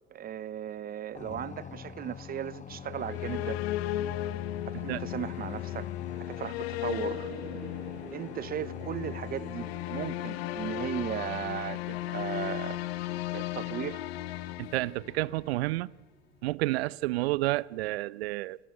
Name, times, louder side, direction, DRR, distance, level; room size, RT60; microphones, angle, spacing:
voice 1, 0.1-3.6 4.7-5.9 6.2-7.3 8.1-12.8 13.3-14.0, right 10 dB, 30° right, 0.7 m, -37 dB
sound 1, 1.1-11.0, left 6 dB, 20° left, 1.2 m, -49 dB
sound 2, 2.7-15.5, left 13 dB, 70° left, 1.0 m, -35 dB
sound 3, 6.8-16.9 17.1-17.3 17.6-17.7, right 1 dB, 90° right, 7.1 m, -49 dB
voice 2, 14.6-15.9 16.4-18.6, right 19 dB, 70° right, 0.7 m, -30 dB
19.5 x 13.5 x 9.9 m
hypercardioid pair, 75°, 32 cm